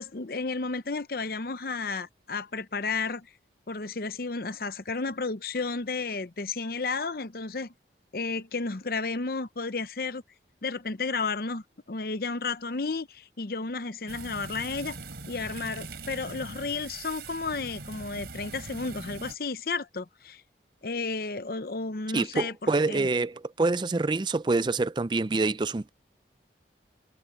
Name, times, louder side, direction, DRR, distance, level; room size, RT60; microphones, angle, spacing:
voice 1, 0.0-3.3 3.7-7.7 8.1-10.2 10.6-15.0 15.3-20.4 20.8-23.1, left 4 dB, 55° left, 0.8 m, -32 dB
sound 1, 14.1-19.4, right 3 dB, 65° right, 3.6 m, -42 dB
voice 2, 22.1-25.9, right 3 dB, 25° right, 0.4 m, -26 dB
head